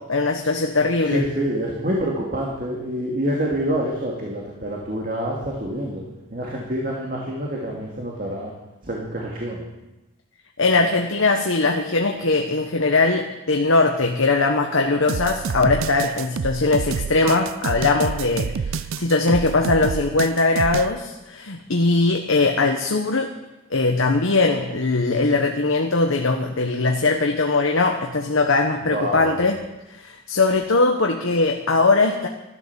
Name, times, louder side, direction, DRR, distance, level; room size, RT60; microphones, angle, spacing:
voice 1, 0.1-1.3 10.6-23.3 23.7-29.6 29.9-32.3, left 3 dB, 85° left, 3 dB, 1.2 m, -20 dB
voice 2, 1.1-6.0 6.3-8.5 8.8-9.6 28.9-29.3, equal, 40° right, -3 dB, 2.4 m, -26 dB
sound 1, 15.1-20.9, right 6 dB, 85° right, 0.4 m, -28 dB
13.5 x 12.0 x 7.0 m, 1.0 s
head